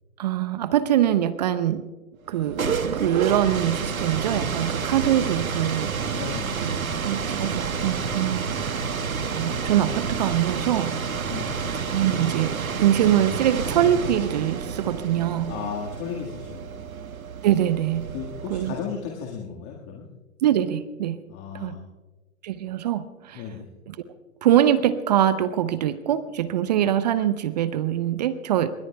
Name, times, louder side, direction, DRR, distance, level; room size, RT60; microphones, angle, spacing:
voice 1, 0.2-1.8 2.3-2.6 2.9-5.9 6.6-6.8 7.0-8.8 9.3-10.9 11.9-15.5 17.4-18.1 18.5-18.7 20.4-21.2 21.5-21.8 22.4-23.4 23.9-24.0 24.4-28.7, right 11 dB, 30° right, 14 dB, 0.6 m, -23 dB
sound 1, 2.3-19.0, right 5 dB, 75° right, 1.4 m, -29 dB
voice 2, 6.2-6.6 11.3-11.6 15.5-16.9 18.1-20.1 21.3-21.8 23.3-23.7, left 7 dB, 25° left, -1 dB, 1.7 m, -35 dB
26.0 x 22.0 x 2.3 m, 1.2 s
figure-of-eight pair, 120°, 42 cm